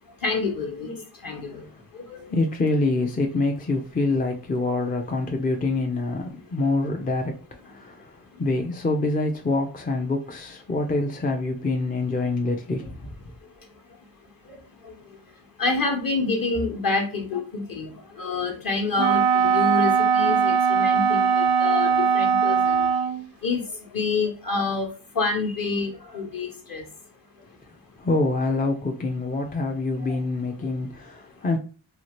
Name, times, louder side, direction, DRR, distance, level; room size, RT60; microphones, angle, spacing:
voice 1, 0.2-2.3 8.3-8.4 13.4-14.0 14.2-22.9 23.4-26.9 30.0-30.2, left 3 dB, 45° left, 1.1 m, -28 dB
voice 2, 2.3-7.4 7.6-8.1 8.4-13.0 28.0-31.6, left 2 dB, 20° left, 0.4 m, -25 dB
Wind instrument woodwind instrument, 19.0-23.3, right 6 dB, 80° right, 0.6 m, -20 dB
2.8 x 2.4 x 3.0 m
cardioid pair, 55°, 47 cm